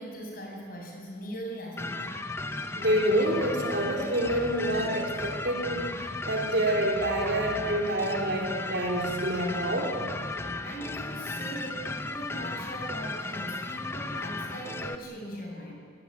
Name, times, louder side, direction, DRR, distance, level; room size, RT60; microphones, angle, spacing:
voice 1, 0.0-2.1 10.6-15.7, right 1 dB, 50° left, -1 dB, 7.6 m, -40 dB
sound 1, 1.8-15.0, left 2 dB, 15° left, 0.9 m, -35 dB
voice 2, 2.8-9.9, right 1 dB, 65° right, -1 dB, 4.5 m, -27 dB
29.5 x 16.5 x 9.8 m, 2.3 s
head